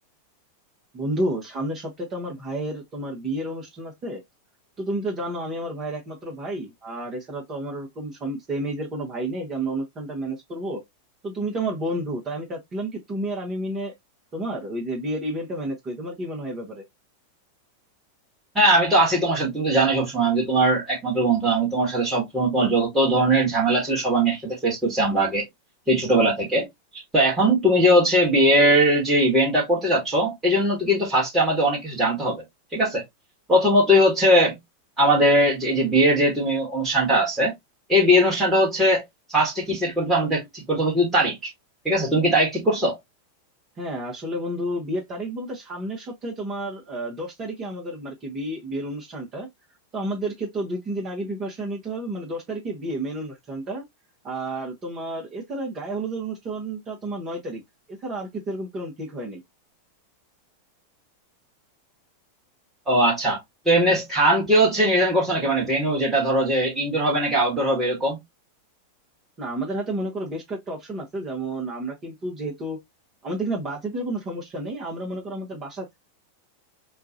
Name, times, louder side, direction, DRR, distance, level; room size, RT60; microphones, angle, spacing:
voice 1, 0.9-4.2 4.8-10.8 11.2-13.9 14.3-16.8 43.8-49.5 49.9-53.8 54.2-57.6 57.9-59.4 69.4-72.8 73.2-76.0, right 1 dB, 25° right, 1.1 m, -31 dB
voice 2, 18.5-25.4 25.9-26.7 26.9-32.4 32.7-33.0 33.5-34.6 35.0-37.5 37.9-39.0 39.3-41.5 41.8-43.0 62.9-63.4 63.6-68.2, right 1 dB, 10° right, 1.5 m, -20 dB
4.5 x 2.4 x 2.7 m
figure-of-eight pair, 90°, 0 cm